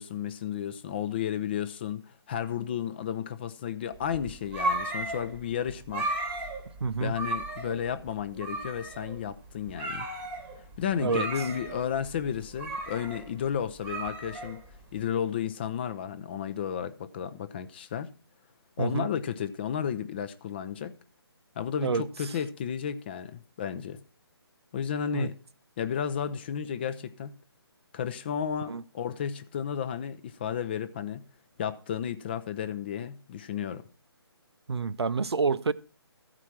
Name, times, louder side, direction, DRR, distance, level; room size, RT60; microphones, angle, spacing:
voice 1, 0.0-6.1 7.0-10.1 10.8-14.6 14.9-18.1 18.8-20.9 21.6-24.0 24.7-25.3 25.8-27.3 27.9-31.2 31.6-33.9, left 8 dB, 25° left, 0.5 m, -33 dB
sound 1, 4.0-15.0, right 2 dB, 10° right, 1.1 m, -35 dB
voice 2, 6.8-7.1 11.0-11.2 18.8-19.1 21.8-22.0 25.1-25.3 28.7-28.8 34.7-35.7, right 4 dB, 80° right, 0.7 m, -28 dB
14.0 x 4.9 x 5.8 m
figure-of-eight pair, 155°, 14 cm